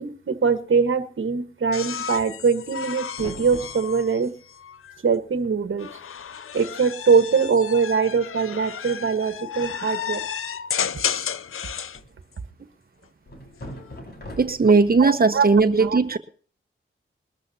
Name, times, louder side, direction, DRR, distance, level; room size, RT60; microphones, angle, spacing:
voice 1, 0.0-4.3 5.0-5.9 6.5-10.2 15.0-15.5 15.8-16.0, right 5 dB, 65° right, 9 dB, 1.6 m, -22 dB
sound 1, 1.7-5.0 5.8-12.0 13.5-14.0, left 8 dB, 80° left, 0.7 m, -32 dB
sound 2, 3.1-4.3 5.2-5.3 5.4-5.8 6.2-6.3 6.9-7.0 7.4-7.7 8.8-9.3 11.3-12.3 13.3-14.9, left 1 dB, 50° left, 5.1 m, -42 dB
voice 2, 14.4-16.2, right 4 dB, 45° right, 8 dB, 1.3 m, -18 dB
22.0 x 13.5 x 2.9 m, 0.43 s
cardioid pair, 70°, 21 cm